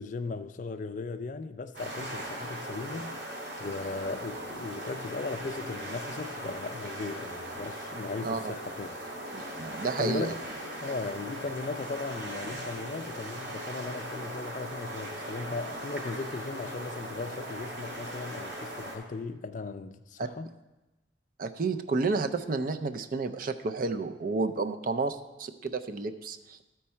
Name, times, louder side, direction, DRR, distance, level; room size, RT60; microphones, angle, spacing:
voice 1, 0.0-3.3 3.6-9.0 9.3-9.4 10.0-10.4 10.8-20.5, left 3 dB, 40° left, 0.4 m, -37 dB
sound 1, 1.7-19.0, right 1 dB, 70° right, 2.4 m, -39 dB
voice 2, 8.2-8.5 9.3-10.3 20.2-20.3 21.4-26.6, right 3 dB, 45° right, 0.4 m, -31 dB
13.5 x 4.6 x 4.3 m
head